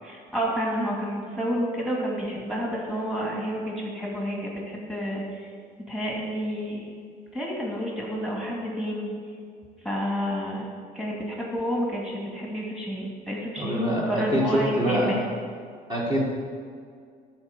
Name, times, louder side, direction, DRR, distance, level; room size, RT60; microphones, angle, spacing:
voice 1, 0.0-5.5 5.9-6.9 7.3-9.1 9.8-10.7 10.9-15.2, equal, ahead, -3 dB, 2.5 m, -30 dB
voice 2, 13.6-15.2 15.9-16.2, equal, 25° right, -6 dB, 2.1 m, -25 dB
12.0 x 4.6 x 6.7 m, 2.1 s
cardioid pair, 110°, 17 cm